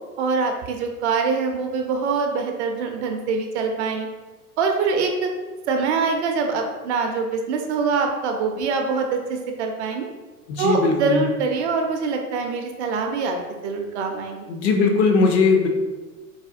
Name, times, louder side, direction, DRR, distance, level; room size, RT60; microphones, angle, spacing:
voice 1, 0.2-4.1 4.6-5.3 5.7-10.1 10.6-13.4 13.6-14.4, right 4 dB, 50° right, 4 dB, 0.5 m, -24 dB
voice 2, 10.5-11.2 14.5-15.7, left 4 dB, 45° left, 2 dB, 0.6 m, -19 dB
4.1 x 2.1 x 2.5 m, 1.2 s
figure-of-eight pair, 95°, 46 cm